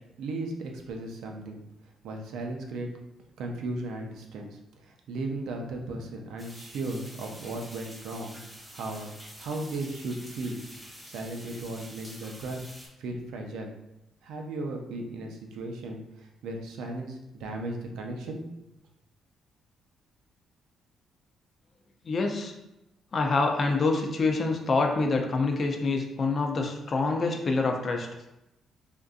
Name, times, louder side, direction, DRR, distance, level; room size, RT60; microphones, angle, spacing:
voice 1, 0.2-1.6 2.0-2.9 3.4-9.1 9.4-10.6 11.1-12.6 13.0-13.7 14.2-18.4, right 2 dB, 85° right, 2 dB, 0.5 m, -36 dB
sound 1, 6.4-12.9, equal, ahead, 0.9 m, -47 dB
voice 2, 22.0-22.5 23.1-28.1, left 3 dB, 45° left, 3 dB, 0.5 m, -26 dB
3.6 x 2.6 x 2.4 m, 0.90 s
cardioid pair, 90°, 0 cm